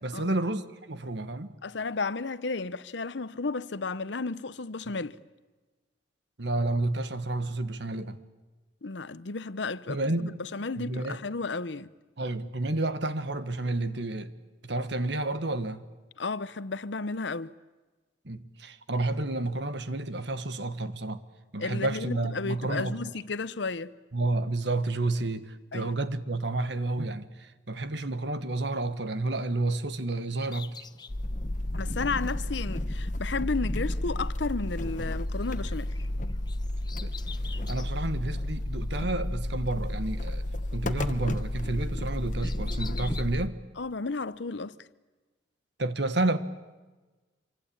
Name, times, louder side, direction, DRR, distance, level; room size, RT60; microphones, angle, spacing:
voice 1, 0.0-1.5 6.4-8.2 9.9-10.4 10.8-11.2 12.2-14.3 14.6-15.8 18.2-21.2 21.5-23.0 24.1-30.7 37.0-37.1 37.7-40.4 40.7-43.6 45.8-46.4, right 2 dB, 65° right, 1.5 m, -30 dB
voice 2, 1.6-5.2 8.8-11.9 16.2-17.5 21.6-23.9 25.7-26.0 31.7-35.9 43.8-44.8, left 4 dB, 70° left, 0.8 m, -33 dB
Bird vocalization bird call bird song, 30.4-35.0 35.3-38.0 38.5-38.6 39.5-40.9 41.2-43.2, left 2 dB, 25° left, 0.8 m, -44 dB
sound 1, 31.1-43.5, left 1 dB, 40° left, 1.1 m, -32 dB
27.0 x 24.5 x 8.7 m
head